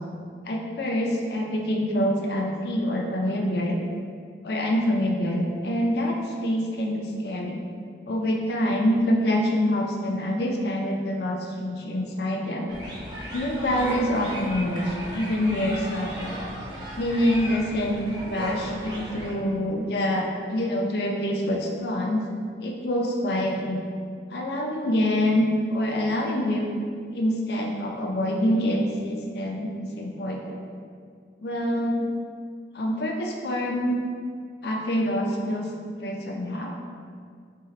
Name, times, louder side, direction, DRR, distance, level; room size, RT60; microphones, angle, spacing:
voice 1, 0.5-3.8 4.4-7.6 8.1-12.7 13.3-16.4 17.0-22.2 22.6-23.9 24.3-26.6 27.1-30.6 31.4-32.1 32.7-34.0 34.6-36.7, equal, 60° left, 1 dB, 0.4 m, -26 dB
sound 1, 12.7-19.3, equal, 25° right, 0.6 m, -36 dB
2.9 x 2.8 x 3.8 m, 2.1 s
head